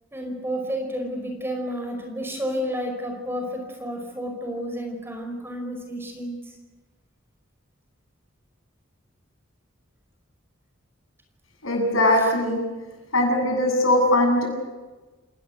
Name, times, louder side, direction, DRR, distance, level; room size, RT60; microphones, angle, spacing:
voice 1, 0.1-6.4 12.2-12.3, equal, 10° right, 3 dB, 5.2 m, -31 dB
voice 2, 11.6-12.6 13.1-14.5, left 1 dB, 90° left, 2 dB, 7.9 m, -20 dB
29.0 x 19.0 x 8.1 m, 1.2 s
head